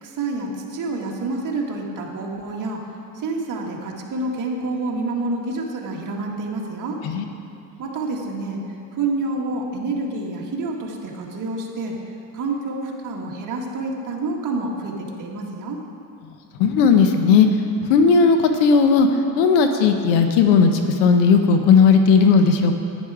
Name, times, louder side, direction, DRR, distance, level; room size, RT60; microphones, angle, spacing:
voice 1, 0.0-2.8 3.2-7.0 7.8-8.6 8.9-12.0 12.3-15.8, right 2 dB, 45° right, -1 dB, 1.9 m, -28 dB
voice 2, 16.6-17.5 17.9-19.1 19.4-20.7 21.0-22.7, left 5 dB, 80° left, 6 dB, 1.0 m, -15 dB
10.5 x 10.0 x 4.9 m, 2.7 s
cardioid pair, 120°, 45 cm